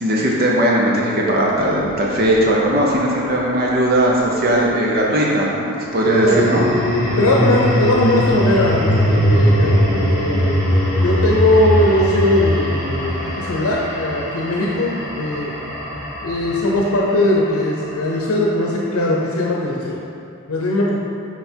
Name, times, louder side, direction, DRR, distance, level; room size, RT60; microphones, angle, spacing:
voice 1, 0.0-6.6, right 1 dB, 45° right, -3 dB, 0.7 m, -18 dB
sound 1, 1.6-4.1 5.7-18.0, equal, 15° right, 1.4 m, -21 dB
voice 2, 7.2-10.6 11.0-15.5 16.2-20.0 20.5-21.0, left 1 dB, 85° left, -3 dB, 0.7 m, -19 dB
5.7 x 4.8 x 4.5 m, 2.6 s
head